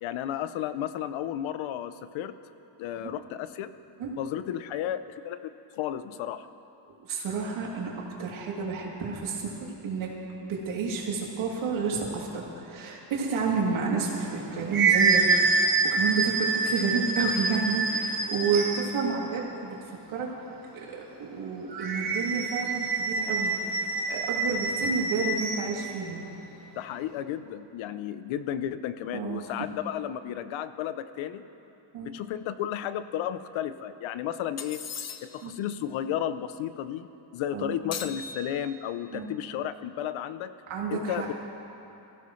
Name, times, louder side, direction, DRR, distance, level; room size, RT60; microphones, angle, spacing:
voice 1, 0.0-2.3 2.8-3.7 4.2-6.5 26.8-31.4 32.0-34.8 35.2-37.1 37.3-40.5 40.9-41.3, left 10 dB, 75° left, 12 dB, 0.8 m, -33 dB
voice 2, 7.1-7.9 8.2-10.1 10.4-15.3 15.6-19.8 20.1-20.3 20.7-26.2 29.1-29.7 31.9-32.1 35.4-35.5 37.5-37.8 39.1-39.3 40.7-41.2, right 5 dB, 75° right, -3 dB, 3.0 m, -30 dB
sound 1, 14.2-19.0 21.7-25.7, right 4 dB, 45° right, 2.1 m, -26 dB
sound 2, 34.6-35.5 37.9-39.0, left 6 dB, 35° left, 0.7 m, -39 dB
23.0 x 15.5 x 3.2 m, 2.9 s
cardioid pair, 145°, 48 cm